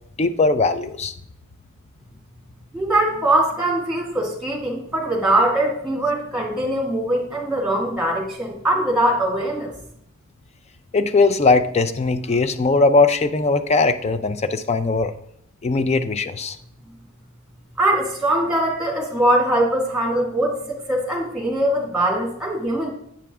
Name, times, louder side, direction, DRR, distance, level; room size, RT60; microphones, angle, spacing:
voice 1, 0.2-1.1 10.9-15.1 15.6-16.6, left 3 dB, 30° left, 11 dB, 0.4 m, -19 dB
voice 2, 2.7-9.8 17.8-22.9, right 1 dB, ahead, -2 dB, 1.9 m, -22 dB
8.5 x 5.9 x 3.5 m, 0.71 s
head